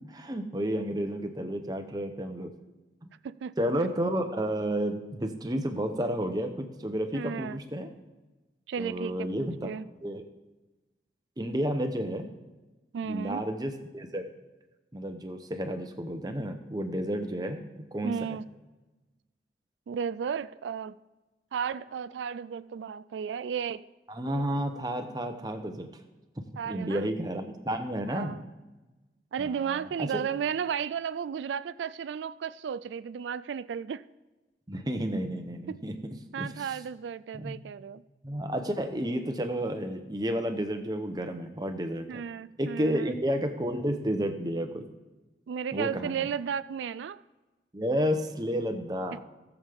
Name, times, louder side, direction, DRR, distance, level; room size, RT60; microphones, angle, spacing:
voice 1, 0.1-2.5 3.6-7.9 8.8-9.7 10.0-10.2 11.4-12.3 13.0-14.2 14.9-18.1 24.1-25.9 26.7-28.4 29.4-30.2 34.7-36.7 37.3-37.6 38.2-42.2 42.6-44.9 45.7-46.3 47.7-49.2, equal, 20° right, 0.9 m, -31 dB
voice 2, 7.1-7.6 8.7-9.8 12.9-13.4 18.0-18.4 19.9-21.0 21.5-23.9 26.6-27.1 28.1-28.4 29.3-34.1 35.7-35.8 36.3-38.0 42.1-43.2 45.5-47.2, right 7 dB, 90° right, 0.3 m, -34 dB
18.0 x 7.2 x 3.5 m
head